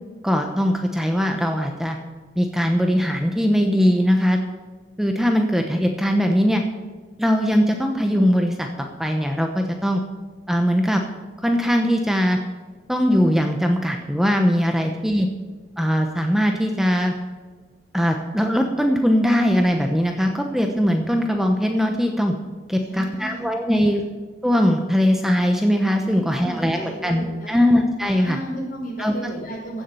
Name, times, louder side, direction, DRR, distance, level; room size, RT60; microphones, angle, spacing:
voice 1, 0.2-2.0 2.4-4.4 5.0-6.6 7.2-10.0 10.5-11.0 11.4-12.4 12.9-15.3 15.8-17.1 17.9-22.3 22.7-24.0 24.4-28.4 29.0-29.1, equal, ahead, 3 dB, 0.9 m, -20 dB
voice 2, 22.8-23.8 26.1-27.8 28.2-29.8, right 1 dB, 50° left, -2 dB, 5.0 m, -34 dB
16.0 x 7.3 x 6.8 m, 1.4 s
head